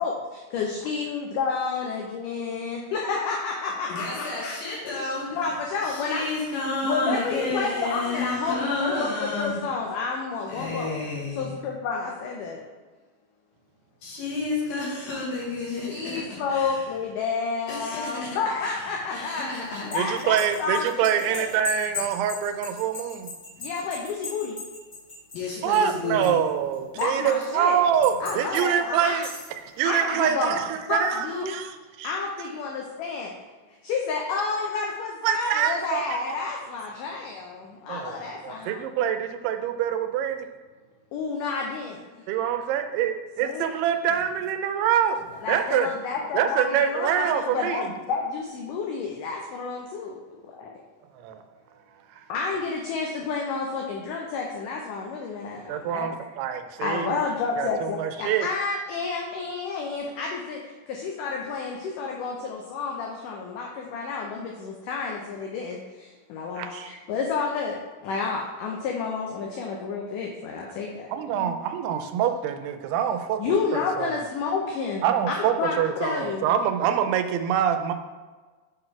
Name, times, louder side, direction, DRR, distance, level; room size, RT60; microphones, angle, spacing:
voice 1, 0.0-4.6 4.8-6.5 6.8-10.9 11.3-12.6 15.7-19.5 19.8-21.5 23.6-24.6 26.9-27.8 28.2-29.2 29.9-30.5 30.9-31.5 32.0-33.3 33.8-38.9 41.1-42.0 43.4-43.7 45.4-50.7 52.3-56.2 56.8-71.5 73.4-76.5, left 4 dB, 90° left, 0 dB, 1.8 m, -30 dB
voice 2, 4.0-5.4 6.0-9.6 10.5-11.5 14.0-16.2 16.5-16.6 17.7-18.4 19.1-20.1 25.3-26.4, left 2 dB, 70° left, -5 dB, 2.9 m, -30 dB
sound 1, 19.6-26.0 26.2-27.4 28.0-28.6 29.1-29.6, left 4 dB, 45° left, 0.9 m, -37 dB
voice 3, 20.0-23.3 25.5-29.3 29.6-32.1 35.2-36.2 37.9-38.2 38.4-40.5 42.3-45.2 45.5-45.9 46.3-47.9 51.2-51.4 55.7-57.2 57.6-58.5 66.6-66.9 71.1-73.4 73.7-74.1 75.0-77.9, right 9 dB, 90° right, 8 dB, 2.6 m, -25 dB
6.9 x 4.0 x 4.4 m, 1.3 s
omnidirectional pair, 4.5 m